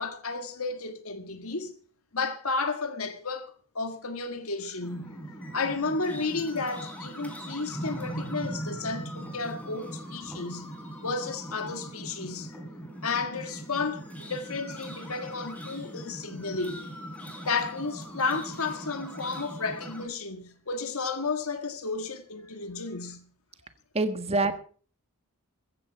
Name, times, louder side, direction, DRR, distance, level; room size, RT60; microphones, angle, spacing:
voice 1, 0.0-1.7 2.1-5.2 5.5-12.6 13.0-16.9 17.4-23.2, left 4 dB, 80° left, 1.7 m, -32 dB
sound 1, 4.8-20.0, right 1 dB, 5° left, 4.5 m, -40 dB
voice 2, 23.9-24.6, right 2 dB, 30° right, 1.5 m, -26 dB
15.5 x 14.5 x 4.7 m
head